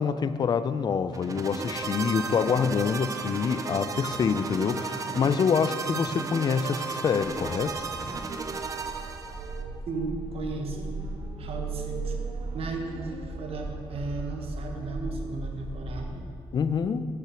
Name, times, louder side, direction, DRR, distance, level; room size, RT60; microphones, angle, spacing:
voice 1, 0.0-7.9 16.5-17.1, left 6 dB, 40° left, 13 dB, 0.4 m, -26 dB
sound 1, 1.1-9.6, right 4 dB, 30° right, 0.6 m, -34 dB
sound 2, 7.2-16.1, right 3 dB, 80° right, 1.3 m, -37 dB
voice 2, 9.9-11.0 11.4-12.2 12.5-16.3, right 3 dB, 65° right, 3 dB, 1.2 m, -35 dB
8.9 x 5.8 x 6.1 m, 2.2 s
cardioid pair, 130°, 11 cm